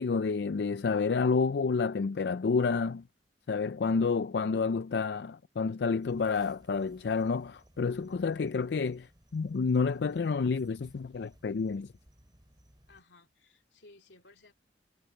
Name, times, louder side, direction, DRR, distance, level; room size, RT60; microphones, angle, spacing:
voice 1, 0.0-3.0 3.5-11.9, left 4 dB, 70° left, 0.4 m, -29 dB
sound 1, 6.0-13.0, equal, 25° right, 4.3 m, -62 dB
voice 2, 12.9-14.5, left 3 dB, 85° left, 2.7 m, -58 dB
head